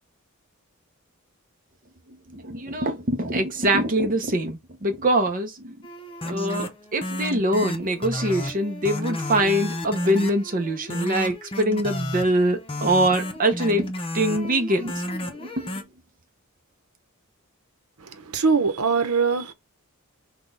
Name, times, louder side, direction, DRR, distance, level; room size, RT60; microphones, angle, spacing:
voice 1, 2.3-5.8 6.2-13.9 14.1-15.0 15.4-15.7, right 1 dB, 40° right, 0.7 m, -23 dB
sound 1, 5.8-15.8, left 1 dB, 25° left, 0.7 m, -32 dB
voice 2, 18.0-19.5, right 5 dB, 90° right, 0.9 m, -22 dB
5.9 x 2.3 x 3.9 m
head